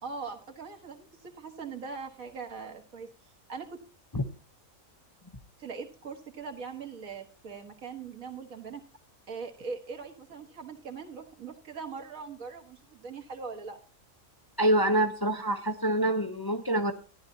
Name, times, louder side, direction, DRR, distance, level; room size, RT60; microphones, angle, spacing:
voice 1, 0.0-3.1 3.5-3.8 5.6-8.8 9.3-13.8, right 5 dB, 70° right, 4 dB, 2.0 m, -41 dB
voice 2, 14.6-16.9, right 1 dB, 20° left, 6 dB, 0.7 m, -26 dB
13.5 x 10.5 x 2.8 m, 0.36 s
omnidirectional pair, 1.5 m